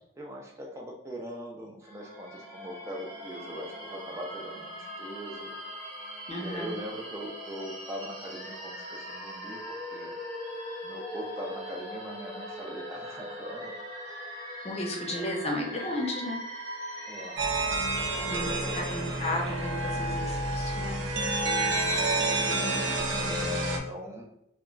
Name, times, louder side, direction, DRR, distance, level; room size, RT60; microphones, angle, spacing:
voice 1, 0.2-5.5 6.4-10.1 10.8-13.7 14.0-14.4 14.9-15.3 17.1-17.4 18.0-18.8 20.3-20.5 22.4-24.3, equal, 15° right, 0 dB, 0.3 m, -41 dB
sound 1, 1.8-17.4, equal, 50° right, 1.0 m, -41 dB
voice 2, 6.3-6.8 14.6-16.4 18.2-21.0, left 1 dB, 35° left, 0 dB, 0.6 m, -34 dB
sound 2, 17.4-23.8, right 2 dB, 80° right, 0.5 m, -29 dB
2.2 x 2.1 x 3.7 m, 0.82 s
head